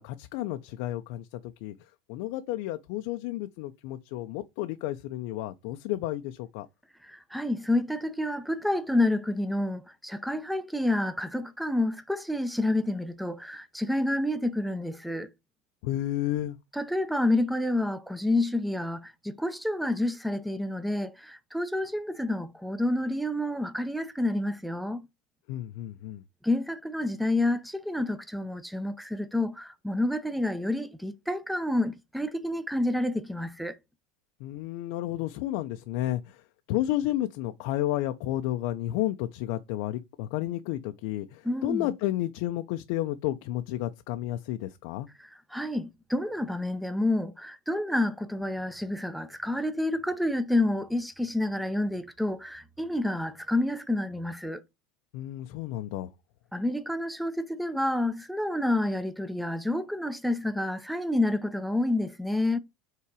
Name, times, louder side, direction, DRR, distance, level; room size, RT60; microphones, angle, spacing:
voice 1, 0.0-1.7 2.1-6.7 15.8-16.6 25.5-26.2 34.4-36.4 36.7-45.1 55.1-56.1, left 14 dB, 70° left, 0.5 m, -32 dB
voice 2, 7.0-15.3 16.7-25.0 26.4-33.8 41.4-41.9 45.5-54.6 56.5-62.6, left 1 dB, ahead, 0.7 m, -29 dB
5.7 x 3.8 x 4.7 m
supercardioid pair, 125°, 0 cm